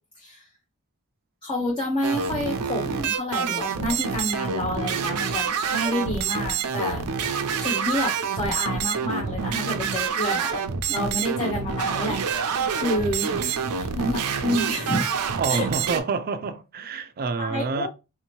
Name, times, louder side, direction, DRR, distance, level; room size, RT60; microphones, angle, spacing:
voice 1, 1.4-7.0 7.5-10.6 10.9-12.2 12.7-13.4 13.7-15.1 15.5-15.7 17.4-17.9, left 1 dB, 25° left, 0.7 m, -29 dB
sound 1, 2.0-16.0, right 6 dB, 85° right, 0.6 m, -27 dB
sound 2, 3.7-4.0 4.8-5.3 5.8-6.0 6.9-7.3, left 1 dB, 65° left, 1.1 m, -44 dB
voice 2, 15.4-17.9, right 4 dB, 45° right, 0.4 m, -27 dB
4.1 x 2.7 x 3.0 m
head